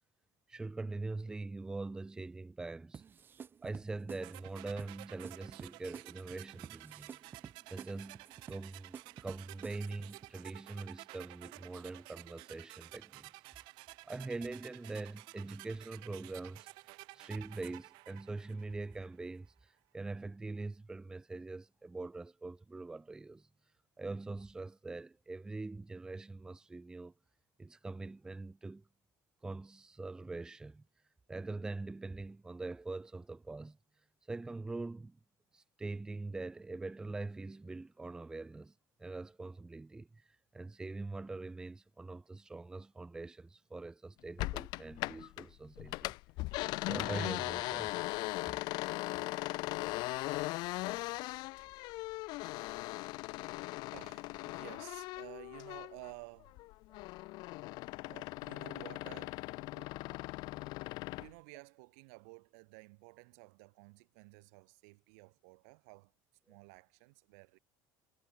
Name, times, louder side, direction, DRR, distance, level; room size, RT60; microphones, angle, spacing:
voice 1, 0.5-3.0 3.6-7.1 7.7-13.3 14.0-16.7 17.1-23.5 24.0-27.1 27.6-28.8 29.4-30.8 31.3-33.8 34.3-35.2 35.5-38.7 39.0-40.3 40.5-46.1 46.9-48.1, right 3 dB, 10° right, 0.6 m, -43 dB
sound 1, 2.9-10.3, right 7 dB, 25° right, 1.7 m, -51 dB
sound 2, 4.2-19.1, right 26 dB, 70° right, 4.6 m, -53 dB
sound 3, 44.4-45.5 45.8-56.1 56.5-61.3, left 21 dB, 60° left, 0.7 m, -39 dB
voice 2, 53.9-56.6 58.1-59.5 59.7-60.0 61.2-66.1 66.5-67.6, right 31 dB, 90° right, 3.9 m, -54 dB
cardioid pair, 150°, 8 cm